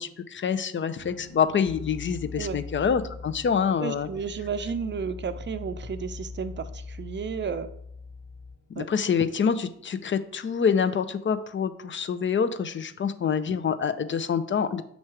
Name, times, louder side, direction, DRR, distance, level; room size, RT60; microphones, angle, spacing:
voice 1, 0.0-4.1 8.8-14.8, left 7 dB, 35° left, 11 dB, 0.6 m, -26 dB
sound 1, 1.0-12.5 12.8-12.9, left 3 dB, 90° left, 1.6 m, -55 dB
sound 2, 1.6-8.6, left 4 dB, 10° left, 1.1 m, -41 dB
voice 2, 3.8-7.7 8.7-8.9, right 6 dB, 35° right, 11 dB, 0.6 m, -32 dB
6.5 x 3.1 x 4.8 m, 0.70 s
supercardioid pair, 55°, 34 cm